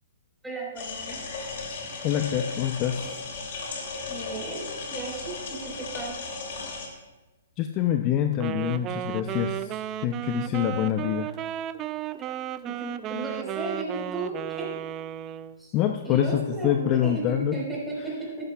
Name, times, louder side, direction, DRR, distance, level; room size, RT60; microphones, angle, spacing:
voice 1, 0.4-1.2 4.1-4.6 4.9-5.4 5.7-6.2 12.3-12.4 12.6-14.7 15.6-15.7 16.0-18.3, right 2 dB, 5° right, -4 dB, 4.1 m, -34 dB
sound 1, 0.8-6.9, left 4 dB, 55° left, 2.6 m, -36 dB
voice 2, 2.0-3.2 7.6-11.4 15.7-17.5, left 10 dB, 35° left, 6 dB, 0.5 m, -26 dB
Wind instrument woodwind instrument, 8.3-15.6, right 12 dB, 30° right, 0.4 m, -34 dB
14.5 x 11.0 x 2.3 m, 1.1 s
hypercardioid pair, 125°, 0 cm